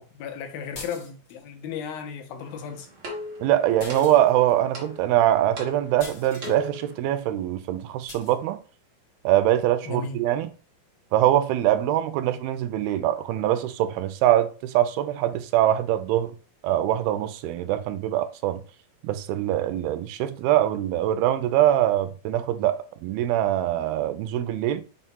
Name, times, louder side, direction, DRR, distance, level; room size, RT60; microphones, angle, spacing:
voice 1, 0.0-2.9 9.9-10.2, left 7 dB, 80° left, 2.9 m, -35 dB
sound 1, 0.7-1.5 3.8-4.6 6.0-6.6 8.1-8.4, left 4 dB, 55° left, 1.3 m, -42 dB
sound 2, 2.4-7.0, left 2 dB, 40° right, 1.5 m, -38 dB
voice 2, 3.4-8.6 9.2-10.5 11.1-16.3 16.6-18.6 19.0-24.8, right 12 dB, 90° right, 2.5 m, -23 dB
6.9 x 2.5 x 5.4 m
omnidirectional pair, 4.2 m